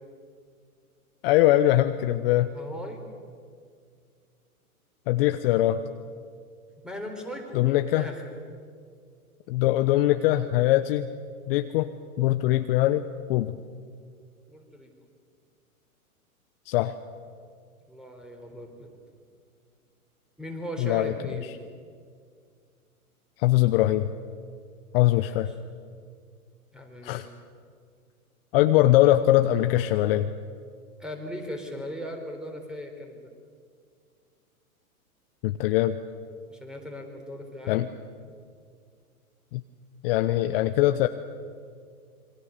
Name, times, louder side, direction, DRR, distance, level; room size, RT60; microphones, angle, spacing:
voice 1, 1.2-2.5 5.1-5.8 7.5-8.1 9.5-11.1 11.5-11.9 12.2-13.6 16.7-16.9 20.8-21.1 23.4-24.1 24.9-25.5 27.0-27.3 28.5-30.3 35.4-36.0 37.7-37.9 39.5-39.6 40.0-41.1, left 14 dB, 40° left, 9 dB, 0.9 m, -22 dB
voice 2, 2.5-3.0 6.8-8.3 14.5-14.9 17.9-19.0 20.4-21.5 26.7-27.2 28.8-28.9 31.0-33.3 36.5-37.8, equal, ahead, 3 dB, 3.9 m, -38 dB
27.0 x 23.0 x 6.6 m, 2.1 s
hypercardioid pair, 120°, 44 cm